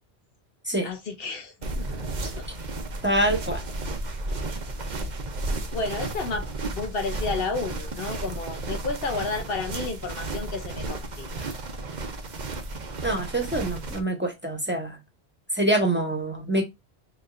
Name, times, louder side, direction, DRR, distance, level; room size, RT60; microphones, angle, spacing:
voice 1, 0.8-1.9 2.3-2.5 4.9-5.1 5.7-6.5 6.8-11.5, left 3 dB, 65° left, 0.9 m, -31 dB
sound 1, 1.6-14.0, right 2 dB, 45° right, 0.8 m, -33 dB
voice 2, 3.0-3.6 13.0-15.0 15.5-16.6, right 1 dB, 10° right, 1.1 m, -25 dB
6.7 x 2.8 x 2.5 m
omnidirectional pair, 1.1 m